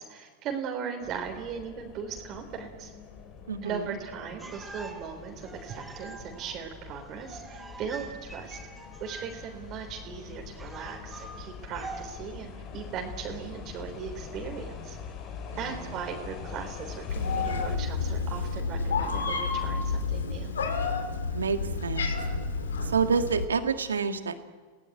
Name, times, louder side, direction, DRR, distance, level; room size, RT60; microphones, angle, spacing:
voice 1, 0.0-2.9 3.6-8.6 9.0-15.0 15.6-20.5, right 7 dB, 40° right, 2 dB, 3.6 m, -38 dB
sound 1, 1.0-17.8, left 6 dB, 45° left, 4.1 m, -44 dB
voice 2, 3.5-4.0 15.5-15.9 21.3-22.1 22.8-24.4, right 5 dB, 85° right, 8 dB, 1.7 m, -28 dB
sound 2, 4.4-12.0, right 2 dB, 10° right, 4.9 m, -45 dB
Meow, 17.1-23.4, left 4 dB, 80° left, 2.5 m, -30 dB
29.0 x 18.0 x 9.3 m, 1.4 s
hypercardioid pair, 95°, 0 cm